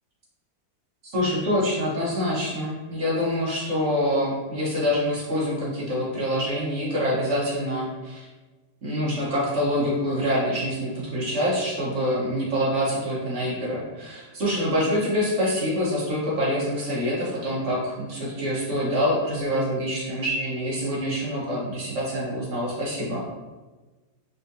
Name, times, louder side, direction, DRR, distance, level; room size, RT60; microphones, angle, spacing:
voice 1, 1.0-8.3 8.8-23.2, equal, 45° right, -6 dB, 1.4 m, -26 dB
4.2 x 3.8 x 2.7 m, 1.2 s
omnidirectional pair, 2.0 m